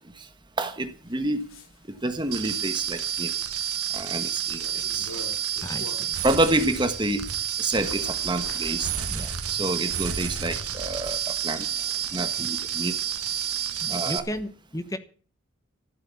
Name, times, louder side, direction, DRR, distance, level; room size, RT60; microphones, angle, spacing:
voice 1, 0.6-1.5 2.0-3.3 3.9-5.1 6.2-7.2 7.6-8.9 9.5-11.7 12.1-13.0 13.9-14.2, right 2 dB, 20° right, 9 dB, 1.4 m, -28 dB
Bird, 0.8-6.3 6.7-14.4, left 2 dB, 70° left, 2.7 m, -47 dB
sound 1, 2.3-14.2, right 9 dB, 90° right, 1.8 m, -30 dB
voice 2, 5.6-6.1 9.1-9.3 12.4-12.5 13.8-15.0, left 1 dB, 15° left, 11 dB, 1.1 m, -34 dB
14.5 x 8.3 x 8.4 m, 0.42 s
head